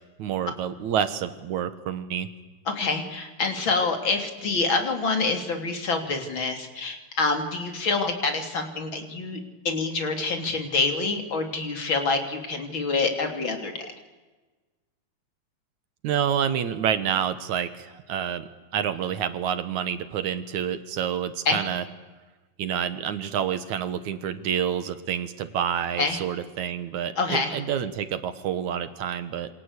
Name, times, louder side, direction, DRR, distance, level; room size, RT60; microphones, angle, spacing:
voice 1, 0.2-2.3 16.0-21.8 22.6-29.5, right 8 dB, 65° right, 12 dB, 2.5 m, -28 dB
voice 2, 2.7-9.4 9.7-13.9 21.5-21.6 26.0-26.2 27.2-27.6, left 3 dB, 35° left, 6 dB, 3.7 m, -26 dB
27.5 x 26.0 x 8.3 m, 1.3 s
omnidirectional pair, 3.8 m